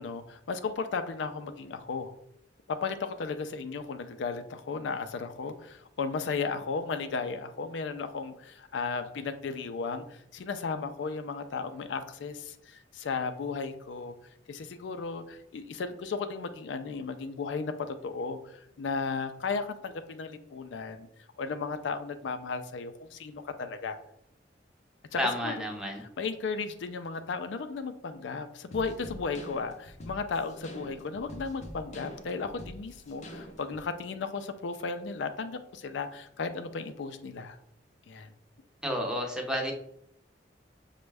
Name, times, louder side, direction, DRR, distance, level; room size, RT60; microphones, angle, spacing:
voice 1, 0.0-2.1 2.7-14.1 14.5-21.1 21.4-24.0 25.1-25.5 26.0-37.6 38.1-38.3, left 4 dB, 90° left, 10 dB, 0.4 m, -35 dB
voice 2, 25.2-26.0 38.8-39.7, equal, 5° right, 1 dB, 0.6 m, -30 dB
sound 1, 28.7-33.8, equal, 40° left, 0.6 m, -45 dB
6.1 x 2.2 x 3.3 m, 0.73 s
head